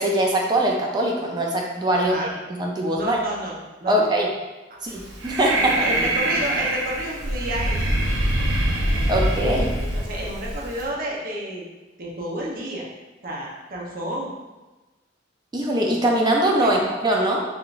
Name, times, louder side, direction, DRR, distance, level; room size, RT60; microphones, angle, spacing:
voice 1, 0.0-2.1 2.5-3.2 3.9-4.3 4.8-5.7 9.1-9.7 15.5-17.4, right 1 dB, 20° right, -1 dB, 0.4 m, -22 dB
voice 2, 1.9-2.3 2.9-4.0 5.6-7.9 9.8-11.7 12.0-12.9 13.2-14.3 16.6-16.8, right 1 dB, 50° right, -3 dB, 0.7 m, -30 dB
Breathing, 4.9-10.8, right 1 dB, 85° right, 0.6 m, -24 dB
3.6 x 3.4 x 2.4 m, 1.1 s
head